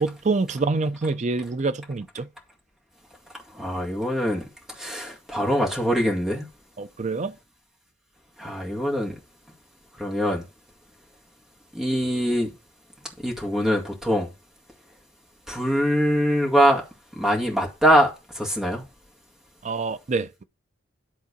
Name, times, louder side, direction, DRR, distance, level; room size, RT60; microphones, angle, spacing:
voice 1, 0.0-2.3 6.8-7.3 19.6-20.4, right 3 dB, 40° right, 0.5 m, -26 dB
voice 2, 3.5-4.4 4.8-6.5 8.4-9.2 10.0-10.4 11.7-12.5 13.2-14.3 15.5-16.8 17.2-18.8, equal, 5° right, 1.9 m, -23 dB
11.0 x 3.9 x 5.0 m
head